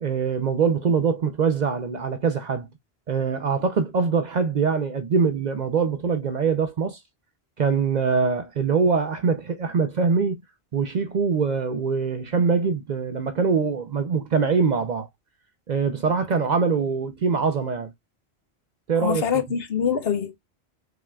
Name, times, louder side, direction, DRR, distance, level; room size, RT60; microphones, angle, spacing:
voice 1, 0.0-2.7 3.1-7.0 7.6-10.4 10.7-15.1 15.7-17.9 18.9-19.2, right 5 dB, 50° right, 0.6 m, -23 dB
voice 2, 19.0-20.4, left 7 dB, 70° left, 1.1 m, -24 dB
4.8 x 3.6 x 2.2 m
omnidirectional pair, 1.1 m